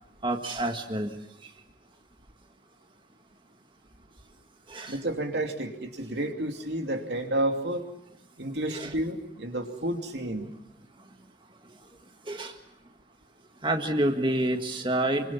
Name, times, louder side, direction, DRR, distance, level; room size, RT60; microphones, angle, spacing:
voice 1, 0.2-1.1 4.7-5.0 8.7-8.9 12.3-12.5 13.6-15.3, right 1 dB, 30° right, 4 dB, 1.8 m, -28 dB
voice 2, 4.9-7.8 8.4-10.5, right 1 dB, 80° right, 4 dB, 2.8 m, -30 dB
26.0 x 25.0 x 7.2 m, 0.79 s
head